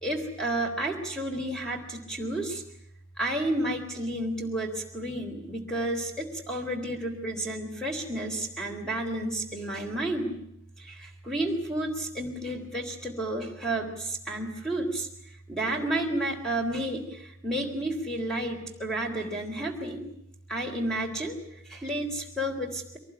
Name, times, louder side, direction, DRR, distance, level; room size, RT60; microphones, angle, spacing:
voice 1, 0.0-2.6 3.2-10.4 10.8-15.1 15.5-20.1 20.5-21.4 21.7-23.0, right 1 dB, 5° left, 2 dB, 3.8 m, -31 dB
24.0 x 19.0 x 10.0 m, 0.76 s
head